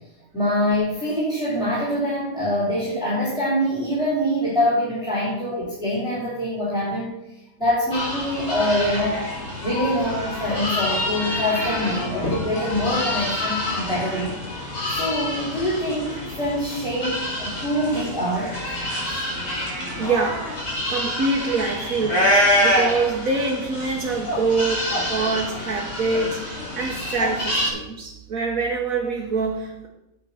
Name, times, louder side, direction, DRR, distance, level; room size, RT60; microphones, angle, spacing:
voice 1, 0.3-7.1 7.6-9.2 9.6-14.3 14.9-18.6 19.1-19.2, equal, 5° right, -7 dB, 3.7 m, -24 dB
sound 1, 7.9-27.7, left 1 dB, 90° left, 4.3 m, -26 dB
voice 2, 20.0-20.6 20.9-29.9, right 3 dB, 70° right, -1 dB, 1.6 m, -25 dB
9.1 x 7.4 x 5.8 m, 0.91 s
omnidirectional pair, 1.5 m